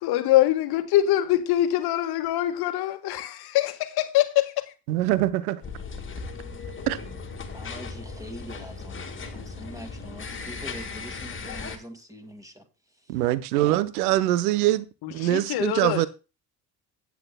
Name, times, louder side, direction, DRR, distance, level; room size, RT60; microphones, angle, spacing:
voice 1, 0.0-4.5 15.0-16.1, left 13 dB, 45° left, 1.4 m, -24 dB
voice 2, 4.9-5.6 6.9-7.0 13.1-14.9 15.1-16.1, right 15 dB, 65° right, 0.8 m, -23 dB
sound 1, 5.6-11.8, left 4 dB, 25° left, 1.8 m, -37 dB
voice 3, 7.5-12.7, equal, 5° right, 2.0 m, -43 dB
16.5 x 9.3 x 2.2 m
figure-of-eight pair, 55°, 50 cm